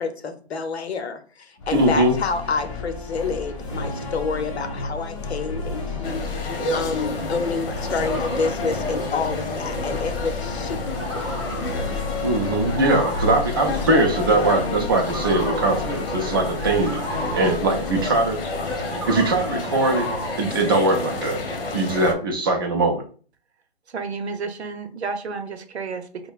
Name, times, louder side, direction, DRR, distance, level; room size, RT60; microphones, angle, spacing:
voice 1, 0.0-11.3, left 4 dB, 85° left, 8 dB, 0.7 m, -28 dB
sound 1, 1.6-19.0, left 3 dB, 30° left, 0.7 m, -32 dB
voice 2, 1.7-2.1 12.2-18.4 19.1-20.1 20.4-21.4 21.7-23.0, right 2 dB, 20° right, 1 dB, 0.4 m, -21 dB
sound 2, 6.0-22.1, left 2 dB, 60° left, 1.0 m, -30 dB
sound 3, 7.4-9.4 9.8-10.1 10.6-14.6 14.9-20.7, equal, ahead, 0.9 m, -36 dB
voice 3, 23.9-26.3, right 4 dB, 85° right, 7 dB, 0.7 m, -31 dB
5.2 x 2.1 x 2.4 m, 0.41 s
hypercardioid pair, 150°, 32 cm